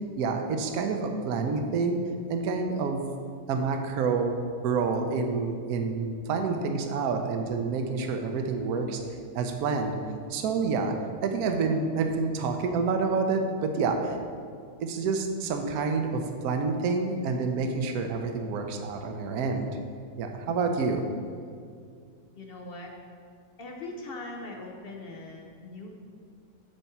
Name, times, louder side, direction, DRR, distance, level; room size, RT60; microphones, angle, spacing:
voice 1, 0.2-2.0 2.3-3.1 3.5-4.3 4.6-9.0 9.3-10.0 10.3-10.9 11.2-14.2 14.8-19.7 20.2-21.0, right 4 dB, 65° right, 4 dB, 1.1 m, -28 dB
voice 2, 22.3-22.9 23.6-25.9, left 2 dB, 60° left, 1 dB, 0.6 m, -40 dB
8.1 x 4.4 x 5.9 m, 2.2 s
omnidirectional pair, 1.9 m